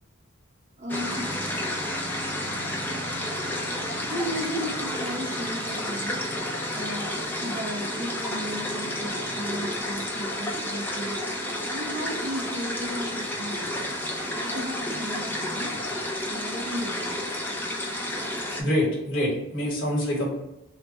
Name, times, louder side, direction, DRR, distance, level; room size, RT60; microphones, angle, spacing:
voice 1, 0.8-1.3 4.1-6.2 6.7-7.1 7.4-11.2 11.7-13.8 14.4-15.8 16.3-17.2, equal, 35° right, 2 dB, 0.6 m, -35 dB
sound 1, 0.9-18.6, left 1 dB, 10° left, 0.5 m, -31 dB
voice 2, 18.6-20.3, left 1 dB, 65° left, -3 dB, 1.2 m, -25 dB
3.3 x 2.1 x 4.1 m, 0.92 s
head